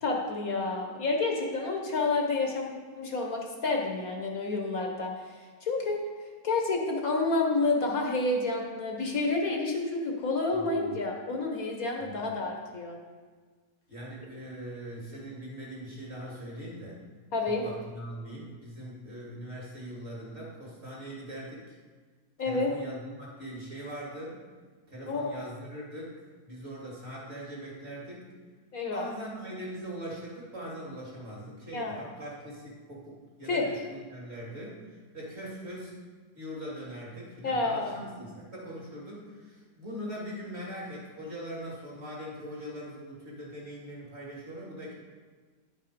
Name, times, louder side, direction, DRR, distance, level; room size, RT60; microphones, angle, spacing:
voice 1, 0.0-5.1 5.6-6.0 6.4-13.0 17.3-17.6 22.4-22.7 25.1-25.4 28.7-29.0 31.7-31.9 33.5-33.7 37.4-38.0, left 3 dB, 60° left, 1 dB, 1.5 m, -29 dB
voice 2, 10.5-11.0 12.0-12.3 13.9-17.0 17.4-21.8 22.4-24.4 24.9-26.1 26.4-28.2 28.9-34.8 35.1-36.0 36.3-44.9, equal, 40° right, -4 dB, 2.6 m, -41 dB
10.0 x 5.8 x 5.2 m, 1.5 s
omnidirectional pair, 1.8 m